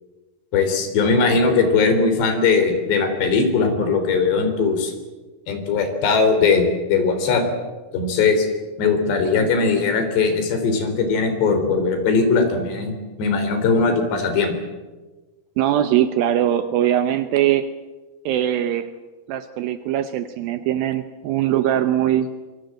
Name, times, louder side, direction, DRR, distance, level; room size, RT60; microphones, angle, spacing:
voice 1, 0.5-4.9 5.5-7.5 7.9-8.5 8.8-14.5, left 4 dB, 65° left, 7 dB, 5.5 m, -19 dB
voice 2, 15.6-17.7 18.3-18.9 19.3-22.3, right 11 dB, 85° right, 10 dB, 2.0 m, -21 dB
26.0 x 24.0 x 7.8 m, 1.2 s
omnidirectional pair, 5.4 m